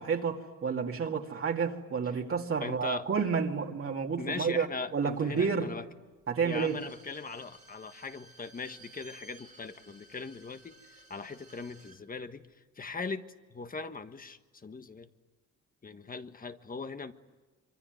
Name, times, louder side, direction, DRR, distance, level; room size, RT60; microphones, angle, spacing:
voice 1, 0.0-4.7 4.9-5.7 6.3-6.8, right 6 dB, 45° right, 1 dB, 2.4 m, -30 dB
voice 2, 2.6-3.1 4.2-5.9 6.4-12.4 12.8-15.1 15.8-17.1, left 4 dB, 30° left, 9 dB, 1.5 m, -40 dB
Bowed string instrument, 6.3-12.0 12.3-12.4, right 3 dB, 25° right, 2.8 m, -56 dB
25.5 x 24.0 x 9.5 m, 1.3 s
cardioid pair, 90°, 30 cm